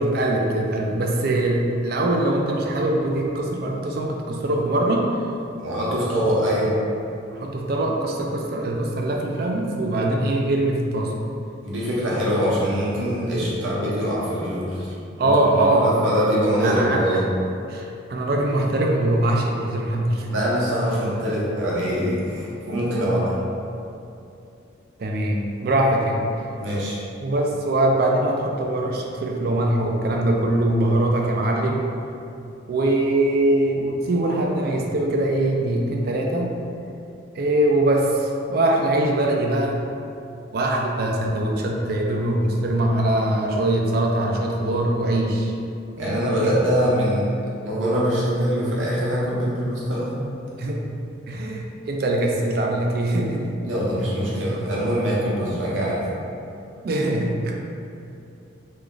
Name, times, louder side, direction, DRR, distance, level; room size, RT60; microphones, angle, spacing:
voice 1, 0.0-5.1 7.3-11.1 15.2-15.9 16.6-17.2 17.7-20.3 25.0-26.4 27.2-31.8 32.7-36.5 37.3-39.8 40.5-45.5 50.6-50.9 51.3-53.5 54.3-54.4 56.8-57.5, right 1 dB, 50° right, 0 dB, 0.4 m, -22 dB
voice 2, 5.6-6.8 11.6-14.9 15.2-17.3 20.3-23.4 26.6-27.0 46.0-47.3 47.6-50.2 53.6-56.0, equal, 80° right, -6 dB, 0.9 m, -23 dB
3.2 x 2.4 x 3.8 m, 2.7 s
head